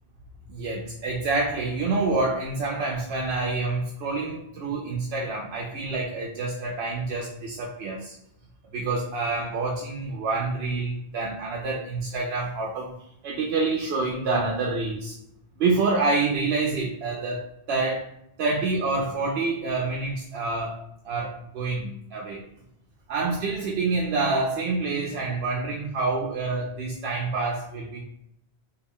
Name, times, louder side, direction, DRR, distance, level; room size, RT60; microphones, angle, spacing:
voice 1, 0.5-8.1 8.7-12.9 13.2-15.2 15.6-18.1 18.4-22.5 23.1-28.1, right 3 dB, 75° right, -1 dB, 0.8 m, -27 dB
3.2 x 2.2 x 3.6 m, 0.78 s
omnidirectional pair, 1.1 m